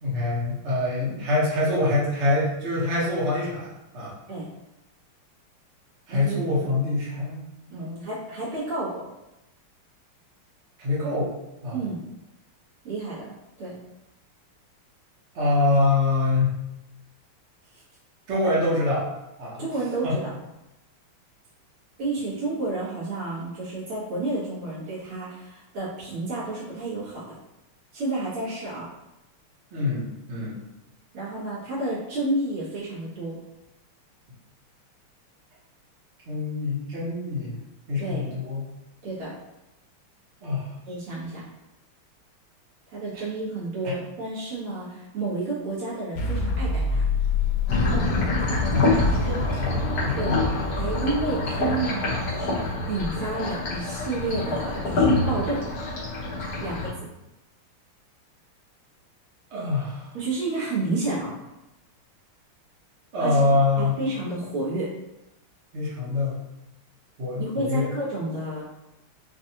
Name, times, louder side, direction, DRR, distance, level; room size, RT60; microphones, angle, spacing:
voice 1, 0.0-3.7 3.9-4.1 6.1-7.4 7.7-8.1 10.8-11.3 11.6-11.8 15.3-16.5 18.3-19.0 19.4-19.6 20.0-20.2 29.7-30.6 36.3-37.5 37.9-38.6 40.4-40.7 43.1-43.2 43.8-43.9 48.7-50.6 59.5-60.1 63.1-64.0 65.7-66.4 67.2-67.9, left 2 dB, 40° right, -7 dB, 1.2 m, -25 dB
voice 2, 6.1-6.6 7.7-9.0 11.7-12.0 12.8-13.2 13.6-13.8 19.6-20.3 22.0-27.2 27.9-28.9 31.1-33.4 38.0-38.3 39.0-39.3 40.9-41.4 42.9-47.0 50.2-50.4 50.7-55.6 56.6-56.9 60.1-61.3 63.2-63.4 63.8-64.9 67.4-68.6, right 2 dB, 80° right, -9 dB, 2.4 m, -30 dB
sound 1, 46.2-52.3, left 3 dB, 90° left, 1.5 m, -27 dB
sound 2, 47.7-56.9, left 2 dB, 55° left, 1.2 m, -26 dB
5.1 x 2.5 x 2.9 m, 0.93 s
omnidirectional pair, 2.4 m